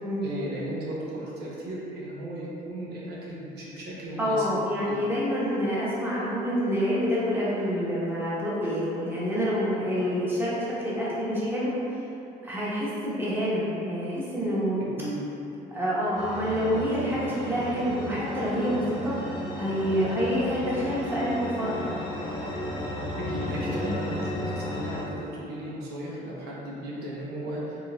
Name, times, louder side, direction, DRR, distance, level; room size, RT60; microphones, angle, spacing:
voice 1, 0.2-4.5 4.8-5.0 15.0-15.5 23.2-27.8, right 1 dB, 75° right, -5 dB, 0.8 m, -35 dB
voice 2, 4.2-11.8 12.4-14.8 15.7-19.2 19.5-22.1, equal, 10° right, -8 dB, 1.1 m, -27 dB
sound 1, 16.1-25.0, left 1 dB, 25° left, 0.8 m, -34 dB
4.6 x 3.3 x 2.3 m, 2.8 s
cardioid pair, 110°, 17 cm